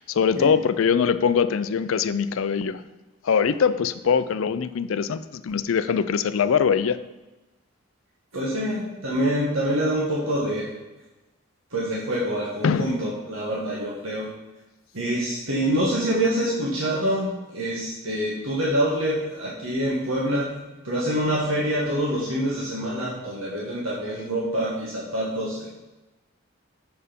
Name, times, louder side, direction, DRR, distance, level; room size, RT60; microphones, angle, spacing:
voice 1, 0.0-2.8 3.2-7.0 12.6-12.9, left 6 dB, 75° left, 12 dB, 0.4 m, -22 dB
voice 2, 8.3-10.7 11.7-14.3 14.9-25.7, right 1 dB, 80° right, -5 dB, 1.7 m, -26 dB
6.8 x 6.7 x 5.1 m, 1.1 s
head